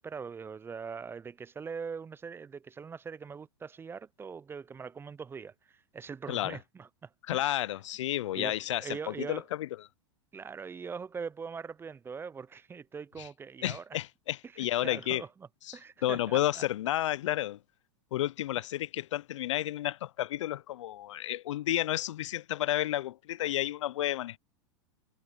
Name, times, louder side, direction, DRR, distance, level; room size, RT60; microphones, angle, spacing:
voice 1, 0.0-7.7 8.3-9.4 10.3-14.0 14.5-15.3 15.7-16.4, right 5 dB, 15° right, 0.5 m, -42 dB
voice 2, 6.3-6.6 7.3-9.7 13.2-13.3 13.6-15.2 15.7-17.6 18.1-24.4, left 13 dB, 75° left, 0.5 m, -31 dB
hypercardioid pair, 110°, 16 cm